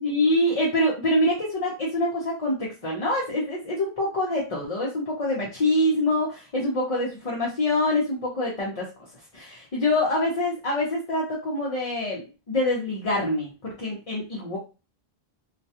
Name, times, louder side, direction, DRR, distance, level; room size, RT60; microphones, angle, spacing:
voice 1, 0.0-8.9 9.3-14.6, left 1 dB, 40° left, -4 dB, 0.6 m, -25 dB
2.3 x 2.1 x 2.7 m, 0.30 s
omnidirectional pair, 1.1 m